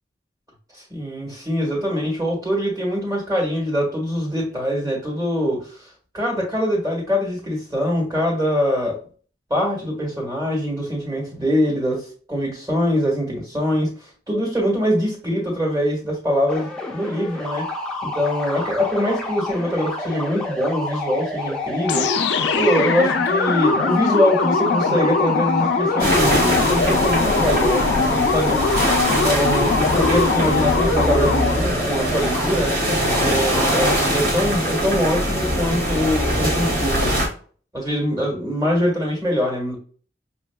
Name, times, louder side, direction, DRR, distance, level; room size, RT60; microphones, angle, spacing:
voice 1, 0.7-9.0 9.5-17.7 18.0-28.6 29.1-32.8 33.1-37.2 37.7-39.7, equal, 20° right, -2 dB, 1.5 m, -23 dB
sound 1, 16.5-34.0, left 2 dB, 5° left, 0.6 m, -29 dB
sound 2, 21.9-31.7, left 4 dB, 80° left, 0.4 m, -22 dB
sound 3, 26.0-37.3, equal, 55° right, 1.4 m, -22 dB
5.6 x 2.6 x 2.2 m, 0.42 s
head